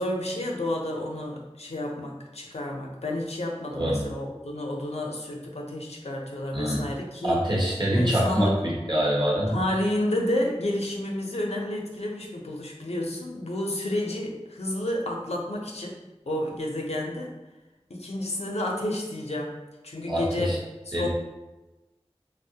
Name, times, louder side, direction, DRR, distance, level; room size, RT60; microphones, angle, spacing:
voice 1, 0.0-7.5 7.9-8.6 9.5-16.0 16.3-17.3 17.9-19.6 19.8-20.6 20.9-21.1, left 1 dB, 75° left, 0 dB, 0.5 m, -30 dB
voice 2, 3.7-4.0 6.5-6.8 7.2-9.6 20.1-20.6 20.9-21.1, equal, 45° right, -3 dB, 0.9 m, -25 dB
3.4 x 2.0 x 2.7 m, 1.1 s
wide cardioid pair, 45°, 11 cm